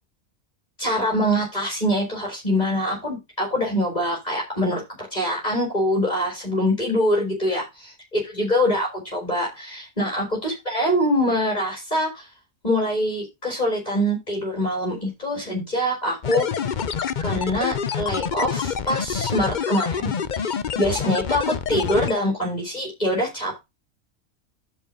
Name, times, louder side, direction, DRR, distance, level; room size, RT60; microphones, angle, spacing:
voice 1, 0.8-4.8 5.1-12.3 12.6-16.5 17.2-23.6, equal, 30° left, -1 dB, 4.1 m, -24 dB
sound 1, 16.2-22.1, left 7 dB, 45° left, 0.7 m, -27 dB
11.0 x 5.0 x 5.2 m, 0.23 s
omnidirectional pair, 1.4 m